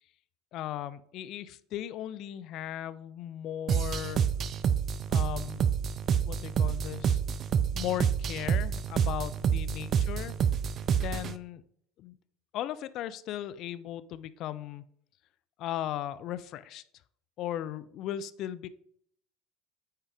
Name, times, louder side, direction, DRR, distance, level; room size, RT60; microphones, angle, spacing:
voice 1, 0.5-4.2 5.1-5.7 6.2-7.2 7.7-10.3 10.9-11.6 12.0-12.2 12.5-14.8 15.6-16.8 17.4-18.7, left 12 dB, 50° left, 14 dB, 0.4 m, -37 dB
Sicily House Fill-in, 3.7-11.4, right 7 dB, 40° right, 0.4 m, -28 dB
7.5 x 4.7 x 3.4 m, 0.67 s
hypercardioid pair, 70°, 0 cm